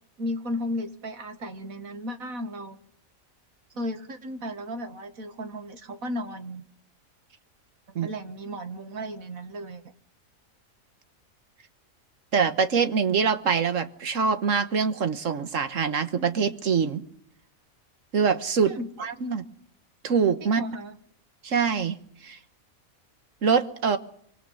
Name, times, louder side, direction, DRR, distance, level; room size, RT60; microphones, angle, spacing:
voice 1, 0.2-2.8 3.7-6.6 8.0-9.8 18.7-18.9 20.4-20.9, equal, 85° right, 8 dB, 2.1 m, -34 dB
voice 2, 12.3-17.0 18.1-18.7 19.0-19.4 20.0-20.6 21.4-22.0 22.2-22.4 23.4-24.0, right 6 dB, 70° right, 10 dB, 1.6 m, -24 dB
24.5 x 24.0 x 5.6 m, 0.66 s
omnidirectional pair, 1.4 m